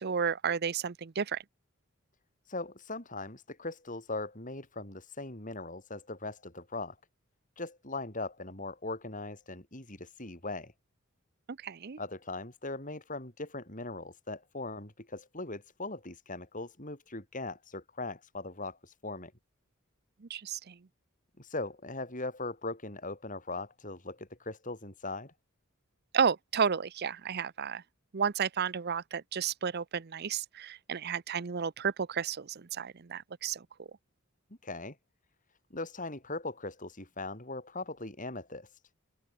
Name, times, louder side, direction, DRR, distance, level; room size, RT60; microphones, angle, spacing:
voice 1, 0.0-1.4 11.5-12.0 20.2-20.8 26.1-27.8 28.1-33.9, right 6 dB, 50° right, 0.6 m, -32 dB
voice 2, 2.4-7.0 7.6-10.7 12.0-19.3 21.4-25.3 34.6-35.0 35.7-38.8, left 2 dB, 40° left, 6.0 m, -40 dB
open air
head